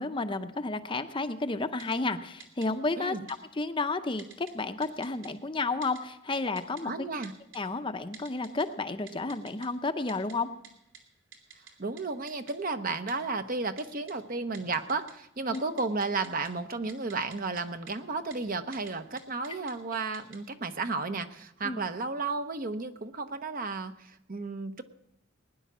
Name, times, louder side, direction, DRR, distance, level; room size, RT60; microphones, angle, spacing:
voice 1, 0.0-7.1 7.5-10.5 15.5-15.6 21.6-21.9, left 3 dB, 25° left, 9 dB, 0.6 m, -32 dB
Typing, 1.8-2.0 2.4-2.7 3.3-3.4 4.2-4.5 4.8-5.3 5.8-6.0 6.3-6.8 7.2-7.6 8.1-8.6 9.1-9.7 10.1-10.3 10.6-10.7 10.9-11.0 11.3-11.7 12.0-12.1 12.3-12.5 13.1-13.2 13.8-14.1 14.5-15.1 15.4-16.5 16.9-17.6 17.9-18.0 18.3-18.4 18.7-18.9 19.2-19.7 20.1-20.4, right 7 dB, 65° right, 2.9 m, -48 dB
voice 2, 3.0-3.3 6.8-7.3 11.8-24.8, right 3 dB, 45° right, 9 dB, 0.9 m, -33 dB
19.5 x 10.5 x 6.1 m, 0.85 s
head